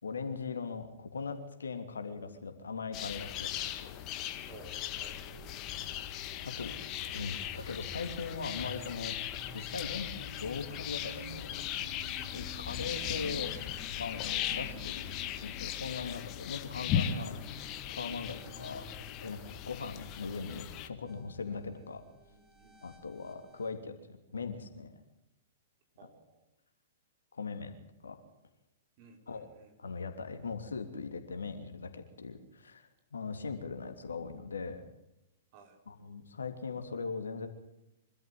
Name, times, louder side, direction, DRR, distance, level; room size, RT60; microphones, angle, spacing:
voice 1, 0.0-3.9 6.4-6.8 7.1-9.2 9.5-11.5 12.2-13.5 14.0-15.0 15.4-17.4 17.9-18.9 19.2-19.4 19.6-22.0 22.8-25.0 27.3-27.7 28.0-28.2 29.3-29.5 29.8-34.8 35.9-37.5, left 4 dB, 80° left, 6 dB, 3.1 m, -40 dB
sound 1, 2.9-20.9, left 10 dB, 35° left, 1.8 m, -38 dB
sound 2, 4.0-23.7, right 2 dB, 20° right, 7.3 m, -53 dB
voice 2, 4.5-5.2 5.5-5.8 21.7-23.0 26.0-26.4 29.0-29.7 35.5-35.8, right 4 dB, 45° right, 4 dB, 5.2 m, -57 dB
25.5 x 13.5 x 7.9 m, 0.94 s
figure-of-eight pair, 110°, 0 cm